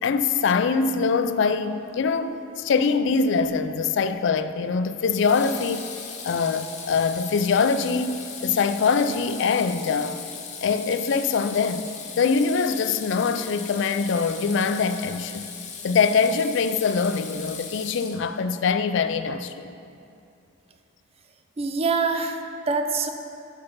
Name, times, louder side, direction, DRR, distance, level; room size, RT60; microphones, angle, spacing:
voice 1, 0.0-5.9 6.2-10.2 10.6-11.9 12.2-15.4 15.8-19.8, left 5 dB, 65° left, 10 dB, 0.4 m, -23 dB
Water tap faucet / Sink (filling or washing), 3.4-3.8 5.1-18.5, left 6 dB, 40° left, 0.8 m, -39 dB
voice 2, 21.6-23.1, right 4 dB, 30° right, 6 dB, 0.4 m, -25 dB
6.7 x 5.4 x 5.7 m, 2.6 s
head